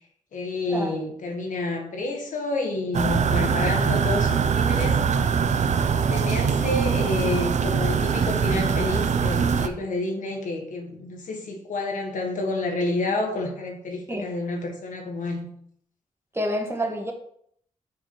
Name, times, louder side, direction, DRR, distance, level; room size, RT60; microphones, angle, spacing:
voice 1, 0.3-5.0 6.1-15.5, left 2 dB, 80° left, 2 dB, 1.6 m, -29 dB
sound 1, 2.9-9.7, right 6 dB, 65° right, 0.6 m, -22 dB
voice 2, 16.3-17.1, equal, 20° right, 1 dB, 1.9 m, -27 dB
5.4 x 4.6 x 6.0 m, 0.66 s
cardioid pair, 60°, 13 cm